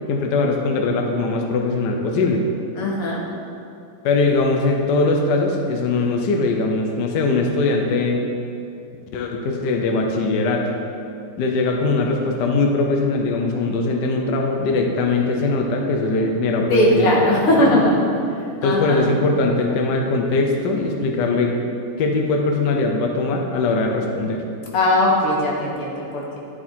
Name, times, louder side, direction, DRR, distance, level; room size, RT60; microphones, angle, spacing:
voice 1, 0.0-2.4 4.0-8.3 9.1-10.7 11.4-17.1 17.6-17.7 18.6-21.5 22.0-24.4, left 3 dB, 60° left, 2 dB, 1.4 m, -21 dB
voice 2, 2.7-3.2 16.7-18.0 18.6-19.0 24.7-26.4, left 1 dB, 90° left, -3 dB, 2.5 m, -19 dB
11.0 x 7.2 x 4.4 m, 2.5 s
omnidirectional pair, 2.4 m